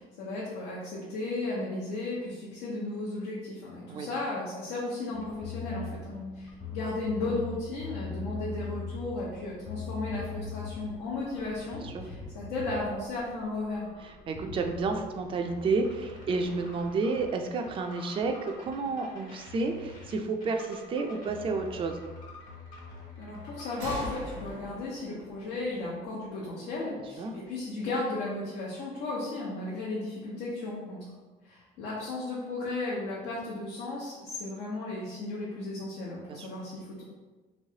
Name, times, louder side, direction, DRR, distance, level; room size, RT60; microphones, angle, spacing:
voice 1, 0.0-13.9 23.2-31.0 31.4-37.0, left 2 dB, 85° left, -6 dB, 0.8 m, -35 dB
sound 1, 5.1-24.5, left 3 dB, 50° left, 1.2 m, -42 dB
voice 2, 14.3-22.0 27.2-27.3 36.3-36.5, right 3 dB, 30° right, 4 dB, 0.3 m, -31 dB
sound 2, 23.8-27.3, right 1 dB, 85° right, 1.2 m, -43 dB
3.1 x 3.1 x 2.8 m, 1.2 s
cardioid pair, 110°, 17 cm